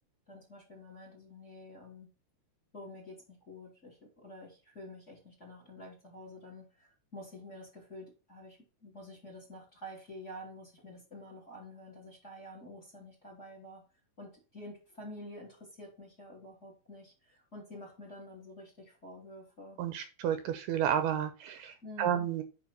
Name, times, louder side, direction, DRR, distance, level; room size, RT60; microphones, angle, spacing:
voice 1, 0.3-2.1 2.7-13.8 14.2-19.8 21.8-22.3, left 1 dB, 20° left, 1 dB, 2.8 m, -49 dB
voice 2, 19.8-22.4, right 9 dB, 75° right, 9 dB, 2.7 m, -31 dB
9.9 x 4.6 x 4.4 m, 0.33 s
omnidirectional pair, 4.9 m